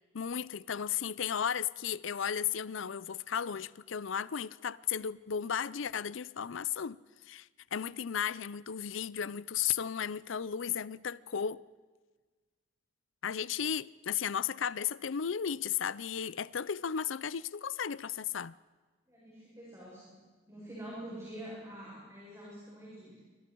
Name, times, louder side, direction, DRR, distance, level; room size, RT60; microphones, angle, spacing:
voice 1, 0.1-7.0 7.3-11.6 13.2-18.5, left 8 dB, 75° left, 0.5 m, -34 dB
voice 2, 19.0-20.2 20.5-23.2, right 1 dB, 15° right, 7.8 m, -46 dB
26.5 x 25.0 x 4.6 m
head